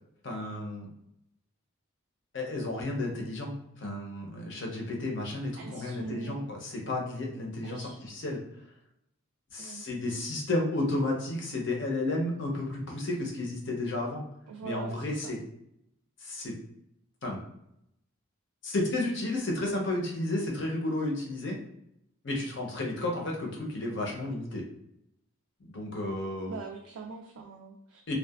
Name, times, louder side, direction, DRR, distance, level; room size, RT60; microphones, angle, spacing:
voice 1, 0.2-0.9 2.3-8.4 9.5-14.3 14.6-15.4 16.2-16.5 17.2-17.4 18.6-21.6 22.2-24.6 25.6-26.6 28.1-28.2, left 2 dB, 60° left, -1 dB, 0.6 m, -32 dB
voice 2, 5.6-6.4 7.6-8.0 9.6-9.8 14.5-15.4 26.5-28.1, right 5 dB, 90° right, 0 dB, 0.3 m, -43 dB
2.7 x 2.2 x 2.3 m, 0.77 s
head